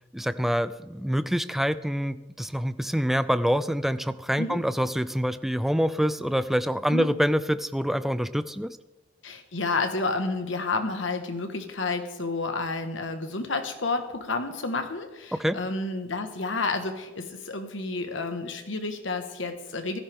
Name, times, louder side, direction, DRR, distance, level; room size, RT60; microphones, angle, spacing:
voice 1, 0.1-8.8 15.3-15.6, equal, ahead, 13 dB, 0.4 m, -26 dB
voice 2, 9.2-20.0, left 3 dB, 75° left, 7 dB, 1.5 m, -30 dB
15.5 x 13.5 x 3.6 m, 1.1 s
head